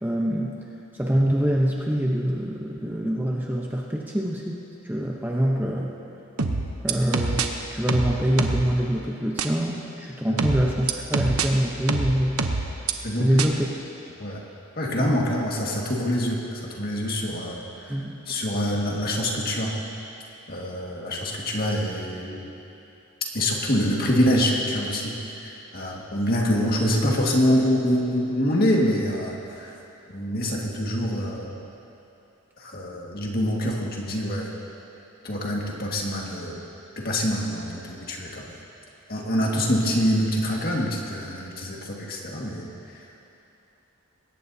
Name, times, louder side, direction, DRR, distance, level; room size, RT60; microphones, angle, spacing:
voice 1, 0.0-0.6 1.0-5.9 6.8-12.4 13.1-13.7 14.9-15.2 17.9-18.2, equal, 10° right, -2 dB, 0.8 m, -25 dB
sound 1, 6.4-7.5 7.9-8.7 9.4-9.5 10.4-11.5 11.9-12.9 13.4-13.5, right 4 dB, 85° right, 0.9 m, -25 dB
voice 2, 13.0-13.4 14.2-14.4 14.8-17.6 18.3-19.7 20.5-22.4 23.3-29.7 30.1-31.5 32.6-34.5 35.2-36.6 37.0-38.4 39.1-42.7 42.9-43.0, equal, 45° left, -2 dB, 1.9 m, -25 dB
20.5 x 17.5 x 2.8 m, 2.8 s
head